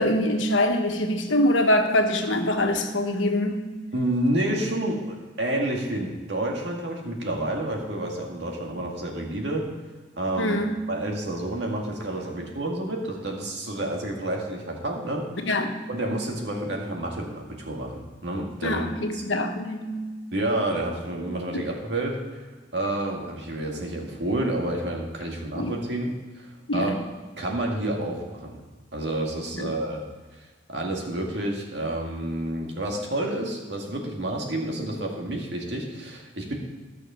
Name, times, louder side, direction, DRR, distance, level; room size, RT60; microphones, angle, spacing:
voice 1, 0.0-3.6 10.4-10.7 15.4-15.8 18.6-20.1 21.5-21.6 25.5-25.7 26.7-26.9 29.6-29.7, left 1 dB, 85° left, 4 dB, 1.3 m, -24 dB
voice 2, 3.9-9.7 10.2-10.6 10.9-15.5 15.9-18.9 19.1-19.2 20.3-22.5 22.7-27.0 27.4-28.6 28.9-30.0 30.7-36.6, right 1 dB, 65° right, 0 dB, 2.1 m, -29 dB
14.5 x 6.5 x 5.7 m, 1.4 s
head